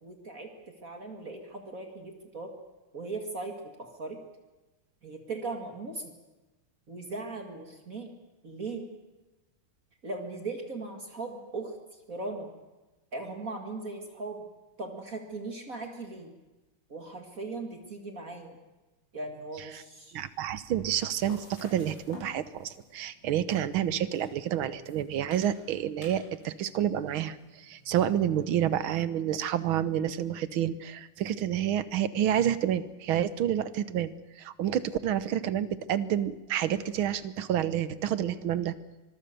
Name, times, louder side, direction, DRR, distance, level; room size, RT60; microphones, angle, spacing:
voice 1, 0.0-2.5 2.9-4.2 5.0-6.1 6.9-8.1 8.4-8.9 10.0-11.7 12.1-12.5 13.1-14.5 14.8-16.3 16.9-18.6 19.1-20.2, right 3 dB, 40° right, 4 dB, 2.5 m, -38 dB
voice 2, 20.1-38.7, right 10 dB, 75° right, 15 dB, 1.8 m, -29 dB
sound 1, 20.2-28.5, left 3 dB, 55° left, 6.8 m, -54 dB
25.0 x 22.0 x 6.8 m, 1.1 s
omnidirectional pair, 2.3 m